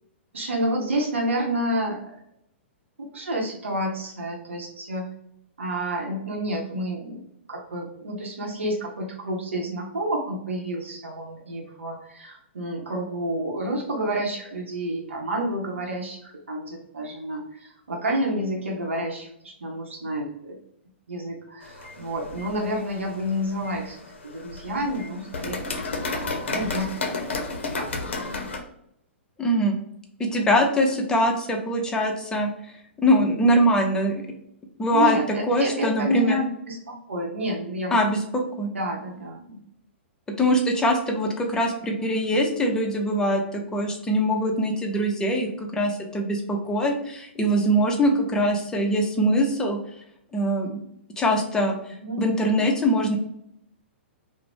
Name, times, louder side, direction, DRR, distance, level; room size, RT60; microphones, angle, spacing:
voice 1, 0.3-2.1 3.1-5.0 5.6-7.2 7.5-20.6 21.1-24.0 24.2-27.4 27.8-28.5 34.9-38.0 38.7-39.6 52.0-52.2, right 1 dB, 80° right, 0 dB, 0.7 m, -29 dB
sound 1, 21.6-28.6, left 3 dB, 70° left, 0.5 m, -33 dB
voice 2, 29.4-29.8 30.2-34.2 34.8-35.2 35.5-36.4 37.9-38.7 40.4-49.8 50.3-50.8 51.2-51.8 52.2-53.2, equal, 10° left, 2 dB, 0.5 m, -23 dB
2.4 x 2.0 x 3.2 m, 0.74 s
figure-of-eight pair, 115°, 7 cm